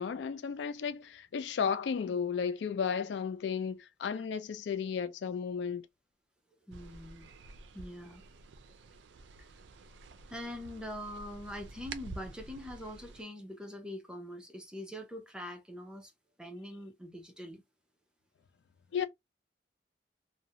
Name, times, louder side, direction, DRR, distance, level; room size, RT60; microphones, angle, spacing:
voice 1, 0.0-5.8 18.9-19.0, left 6 dB, 75° left, 0.3 m, -34 dB
voice 2, 6.7-7.3 7.7-8.2 9.4-9.5 10.3-16.1 16.4-17.6 18.9-19.1, left 1 dB, 5° right, 0.5 m, -43 dB
sound 1, 6.7-13.2, right 3 dB, 80° right, 0.4 m, -49 dB
2.5 x 2.1 x 2.7 m
head